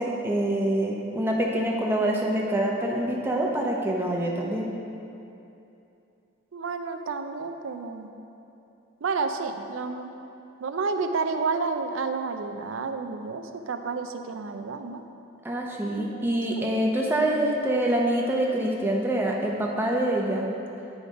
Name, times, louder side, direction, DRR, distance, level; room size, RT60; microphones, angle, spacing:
voice 1, 0.0-4.7 15.4-20.5, right 1 dB, 10° right, -2 dB, 0.7 m, -25 dB
voice 2, 6.5-8.1 9.0-10.1 10.6-15.0 16.6-16.8, right 4 dB, 85° right, 7 dB, 0.5 m, -30 dB
9.2 x 5.0 x 5.1 m, 2.8 s
head